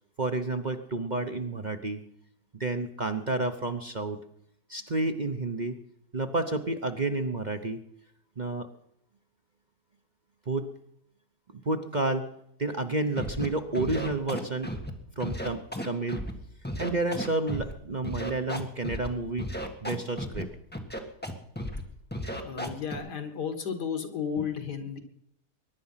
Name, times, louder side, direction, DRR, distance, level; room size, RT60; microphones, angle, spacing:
voice 1, 0.2-2.0 2.6-4.2 4.7-5.8 6.1-7.8 8.4-8.7 10.5-10.7 11.5-12.3 12.6-14.7 15.2-16.2 16.8-19.5 19.8-20.5, right 2 dB, 35° right, 6 dB, 0.8 m, -30 dB
Scratching (performance technique), 13.2-13.5 13.7-14.9 15.2-16.3 16.6-17.7 18.0-19.1 19.4-20.4 20.7-21.3 21.6-21.8 22.1-22.9, equal, 5° left, 1.6 m, -34 dB
voice 2, 22.4-25.0, left 7 dB, 85° left, 6 dB, 2.5 m, -33 dB
22.0 x 10.5 x 5.7 m, 0.77 s
omnidirectional pair, 1.7 m